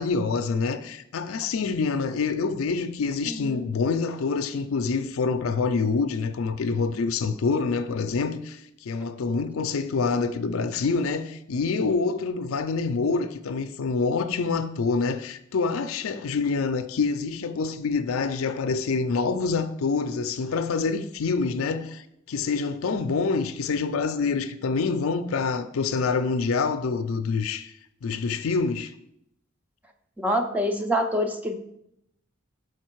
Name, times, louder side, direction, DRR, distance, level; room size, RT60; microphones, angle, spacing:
voice 1, 0.0-27.7 28.0-28.9, left 4 dB, 85° left, 0.5 m, -26 dB
voice 2, 3.3-3.7 30.2-31.5, equal, 10° right, 0.5 m, -26 dB
6.5 x 4.8 x 4.6 m
head